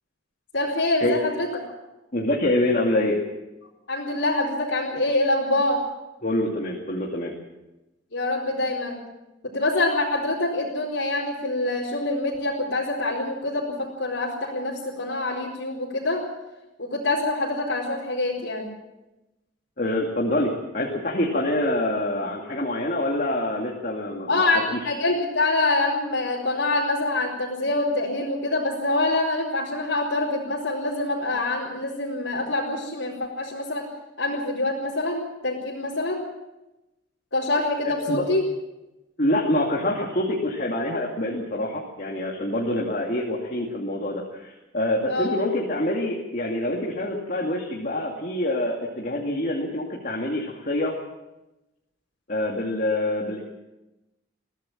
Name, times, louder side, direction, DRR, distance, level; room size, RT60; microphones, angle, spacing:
voice 1, 0.5-1.5 3.9-5.8 8.1-9.0 9.5-16.2 16.8-18.7 24.3-33.8 34.2-36.2 37.3-38.4 45.1-45.3, left 2 dB, 70° left, -5 dB, 4.5 m, -25 dB
voice 2, 2.1-3.2 6.2-7.3 19.8-24.4 24.7-24.9 37.8-38.2 39.2-50.9 52.3-53.4, left 1 dB, 45° left, -2 dB, 2.5 m, -26 dB
22.0 x 16.5 x 7.3 m, 0.98 s
head